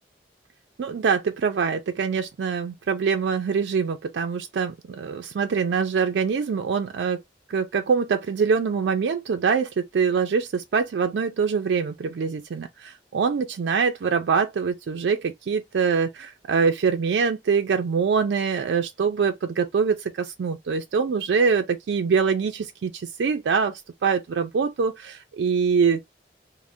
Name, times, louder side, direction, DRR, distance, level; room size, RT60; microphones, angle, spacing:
voice 1, 0.8-7.2 7.5-26.0, right 5 dB, 80° right, 0.4 m, -24 dB
2.6 x 2.0 x 3.4 m
head